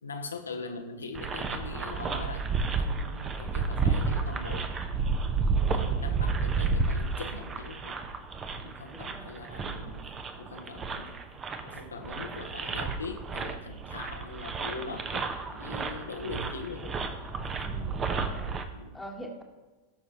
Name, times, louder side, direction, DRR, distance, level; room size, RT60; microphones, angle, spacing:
voice 1, 0.0-4.7 5.7-8.0 8.6-10.1 10.4-11.1 11.6-15.2 15.5-16.9 18.7-19.0, left 4 dB, 75° left, 4 dB, 0.9 m, -41 dB
sound 1, 1.1-18.6, right 4 dB, 25° right, 0.8 m, -31 dB
voice 2, 8.5-9.4 12.0-12.2 17.6-18.6 18.9-19.4, right 1 dB, 5° left, 1 dB, 1.4 m, -45 dB
17.5 x 6.2 x 2.9 m, 1.2 s
figure-of-eight pair, 90°, 0 cm